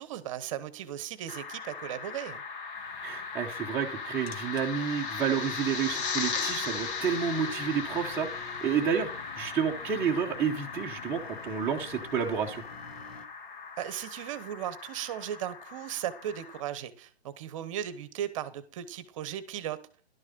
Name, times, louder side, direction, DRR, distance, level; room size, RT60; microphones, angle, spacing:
voice 1, 0.0-2.4 13.8-19.8, right 11 dB, 30° right, 0.9 m, -36 dB
sound 1, 1.3-16.6, left 5 dB, 55° left, 1.9 m, -38 dB
sound 2, 2.8-13.3, left 4 dB, 70° left, 1.6 m, -49 dB
voice 2, 3.0-8.3 8.6-12.6, right 7 dB, 5° right, 0.7 m, -30 dB
11.5 x 6.4 x 5.2 m
hypercardioid pair, 150°, 32 cm